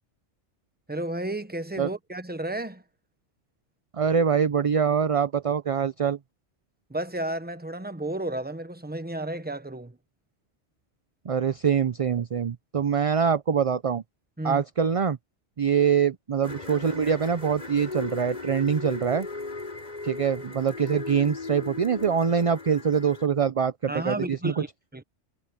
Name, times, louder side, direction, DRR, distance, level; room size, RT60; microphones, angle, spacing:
voice 1, 0.9-2.8 6.9-10.0 14.4-14.6 23.9-24.7 24.9-25.0, right 1 dB, 10° right, 1.1 m, -32 dB
voice 2, 3.9-6.2 11.3-14.0 14.4-15.2 15.6-19.3 20.0-24.5, right 7 dB, 40° right, 0.5 m, -24 dB
sound 1, 16.4-23.3, left 3 dB, 35° left, 4.5 m, -37 dB
omnidirectional pair, 1.2 m